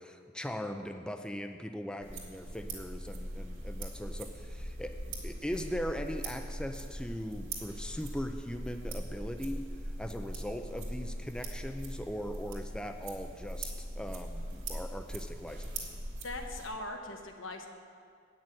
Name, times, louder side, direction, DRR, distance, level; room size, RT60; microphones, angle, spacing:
voice 1, 0.0-4.9 5.2-9.7 10.0-15.9, equal, 5° left, 5 dB, 0.3 m, -39 dB
sound 1, 2.0-16.7, right 1 dB, 70° right, 2.0 m, -41 dB
voice 2, 16.2-17.7, left 2 dB, 75° left, 4 dB, 1.1 m, -40 dB
8.8 x 6.3 x 8.4 m, 2.2 s
head